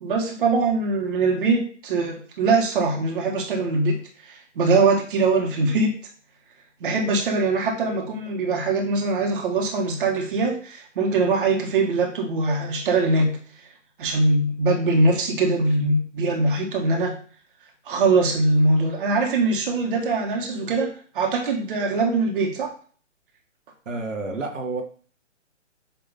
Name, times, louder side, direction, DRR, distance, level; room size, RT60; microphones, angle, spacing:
voice 1, 0.0-3.9 4.2-5.9 6.8-13.3 14.0-17.1 17.9-20.9 21.1-22.7, right 3 dB, 45° right, 1.4 m, -22 dB
voice 2, 23.8-24.8, right 3 dB, 75° right, 1.5 m, -29 dB
8.0 x 3.0 x 4.1 m
figure-of-eight pair, 140°, 38 cm